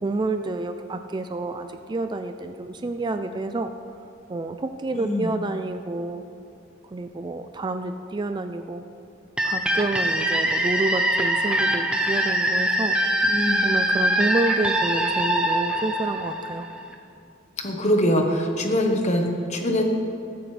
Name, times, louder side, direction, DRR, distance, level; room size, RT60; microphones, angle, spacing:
voice 1, 0.0-3.7 4.3-6.2 6.8-8.8 9.4-13.0 13.6-16.7, right 2 dB, 20° right, 7 dB, 0.3 m, -29 dB
voice 2, 4.9-5.3 13.2-13.6 17.6-19.8, equal, 35° left, 3 dB, 1.2 m, -23 dB
sound 1, 9.4-16.9, right 1 dB, 5° right, 0.7 m, -23 dB
13.5 x 13.0 x 3.3 m, 2.6 s
head